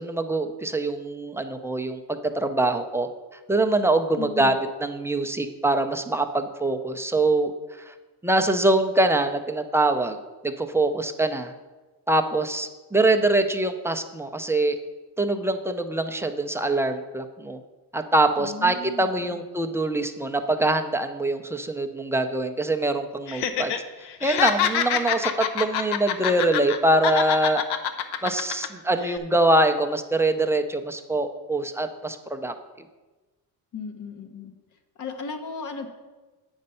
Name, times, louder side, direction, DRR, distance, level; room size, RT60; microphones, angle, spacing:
voice 1, 0.0-3.1 3.5-4.5 4.8-7.5 7.9-8.0 8.2-10.2 10.4-11.5 12.1-14.8 15.2-17.6 17.9-23.7 24.2-27.6 28.2-32.5, right 2 dB, 5° right, 5 dB, 0.3 m, -24 dB
voice 2, 4.1-4.6 18.4-19.4 33.7-34.5 35.0-35.9, left 5 dB, 50° left, 7 dB, 1.0 m, -36 dB
Laughter, 23.3-23.8 24.1-26.8 27.0-28.7 29.0-29.2, left 9 dB, 85° left, 0.8 m, -25 dB
8.6 x 5.3 x 5.4 m, 1.2 s
cardioid pair, 135°, 39 cm